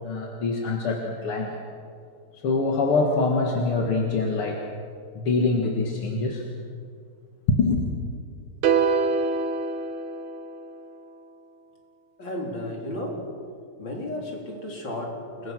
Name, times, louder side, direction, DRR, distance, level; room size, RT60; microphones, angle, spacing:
voice 1, 0.0-1.6 2.4-4.6 5.2-6.4 7.5-7.8, left 3 dB, 80° left, 1 dB, 2.7 m, -24 dB
sound 1, 8.6-10.9, right 5 dB, 75° right, 1.8 m, -25 dB
voice 2, 12.2-13.3 13.8-15.5, left 1 dB, 55° left, -1 dB, 4.7 m, -33 dB
28.5 x 22.0 x 6.2 m, 2.3 s
omnidirectional pair, 2.4 m